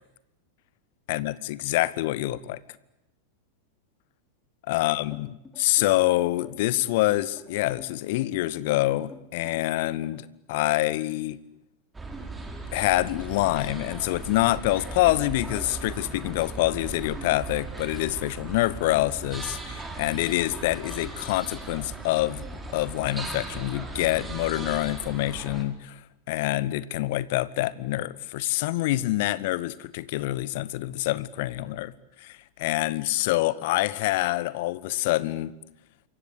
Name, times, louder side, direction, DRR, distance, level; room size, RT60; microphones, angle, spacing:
voice 1, 1.1-2.6 4.7-11.4 12.7-22.4 22.7-26.0 26.3-31.9 32.2-35.5, left 17 dB, 50° left, 19 dB, 1.2 m, -26 dB
sound 1, 5.1-10.4, left 5 dB, 15° left, 3.6 m, -49 dB
sound 2, 11.9-25.6, right 3 dB, 10° right, 5.1 m, -38 dB
27.5 x 24.0 x 8.5 m, 0.87 s
figure-of-eight pair, 90°, 0 cm